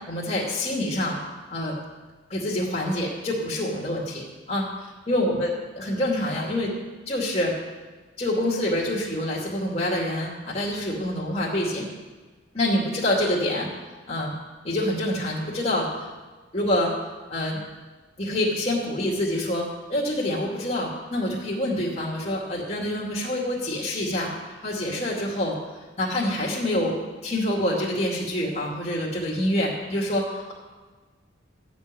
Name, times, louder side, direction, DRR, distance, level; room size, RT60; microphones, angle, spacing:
voice 1, 0.1-1.2 1.5-1.8 2.3-4.7 5.1-6.7 7.1-7.6 8.2-11.9 12.5-13.7 14.1-14.3 14.6-15.9 16.5-16.9 17.3-17.6 18.2-25.5 26.0-27.0 27.2-30.5, left 1 dB, 35° left, -4 dB, 2.5 m, -26 dB
13.5 x 5.4 x 9.0 m, 1.3 s
head